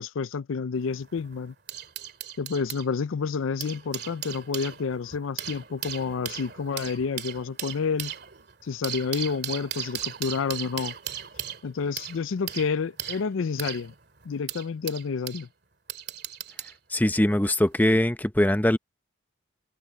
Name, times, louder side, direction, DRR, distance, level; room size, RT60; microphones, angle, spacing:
voice 1, 0.0-1.5 2.4-8.1 8.6-10.9 11.6-13.9 14.3-15.5, left 5 dB, 80° left, 0.5 m, -29 dB
sound 1, 0.8-2.9 3.4-15.5 15.9-16.8 17.7-17.8, right 10 dB, 55° right, 2.5 m, -37 dB
voice 2, 16.9-18.8, left 1 dB, 10° left, 0.7 m, -22 dB
head